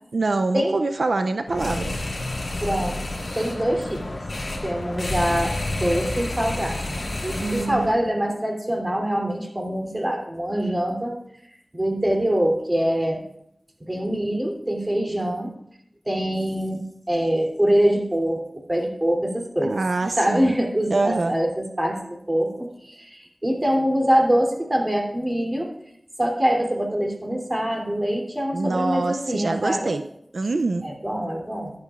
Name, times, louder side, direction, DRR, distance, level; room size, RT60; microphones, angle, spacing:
voice 1, 0.1-2.0 7.4-7.9 19.6-20.5 20.9-21.3 28.5-30.0 30.3-30.9, right 3 dB, 85° right, 8 dB, 0.4 m, -24 dB
sound 1, 1.5-7.9, left 2 dB, 70° left, 4.0 m, -30 dB
voice 2, 2.6-3.0 3.3-4.0 4.6-11.2 11.7-13.2 13.8-15.5 16.0-16.8 17.1-19.8 20.2-25.7 26.2-30.0 30.8-31.7, equal, 25° right, 0 dB, 2.9 m, -24 dB
15.0 x 11.0 x 2.4 m, 0.73 s
wide cardioid pair, 55°, 0 cm